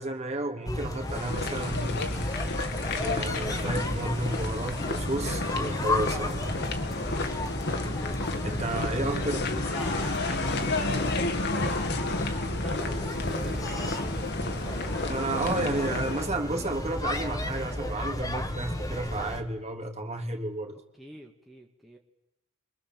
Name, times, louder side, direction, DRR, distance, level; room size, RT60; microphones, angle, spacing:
voice 1, 0.0-2.3 2.9-6.5 8.4-9.5 15.1-20.7, right 2 dB, 30° right, 2.8 m, -32 dB
sound 1, 0.7-19.4, left 1 dB, 15° left, 1.8 m, -33 dB
sound 2, 1.1-16.3, left 2 dB, 50° left, 2.1 m, -32 dB
voice 2, 9.0-12.2 12.5-14.2 14.4-15.3 20.9-22.0, right 1 dB, ahead, 2.0 m, -46 dB
28.5 x 23.5 x 7.7 m
head